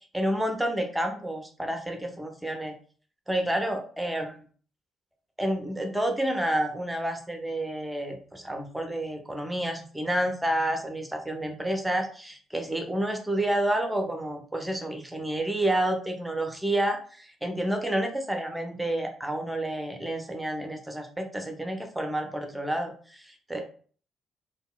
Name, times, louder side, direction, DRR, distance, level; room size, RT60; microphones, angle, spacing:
voice 1, 0.1-2.7 3.3-4.3 5.4-23.6, right 1 dB, 10° right, 4 dB, 0.7 m, -29 dB
3.6 x 2.2 x 2.3 m, 0.43 s
figure-of-eight pair, 45°, 0 cm